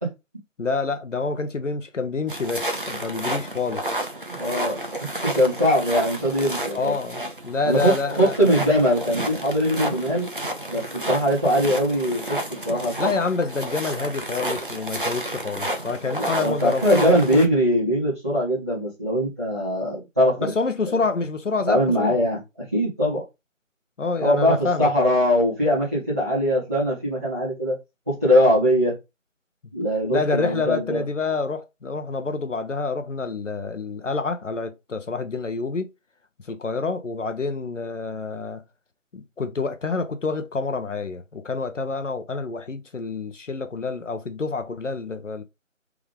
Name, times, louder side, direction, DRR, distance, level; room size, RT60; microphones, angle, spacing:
voice 1, 0.6-3.9 6.7-8.5 13.0-17.5 20.4-22.2 24.0-25.1 30.1-35.9 36.5-38.6 39.1-45.4, left 4 dB, 65° left, 0.7 m, -27 dB
sound 1, 2.3-17.5, right 1 dB, 40° right, 0.6 m, -31 dB
voice 2, 4.3-4.8 5.2-6.9 7.6-10.3 10.7-13.1 16.2-20.5 21.7-22.4 22.7-23.2 24.2-27.7 28.1-29.0 29.7-31.0, equal, 10° right, 1.4 m, -21 dB
3.5 x 3.4 x 3.4 m
figure-of-eight pair, 170°, 39 cm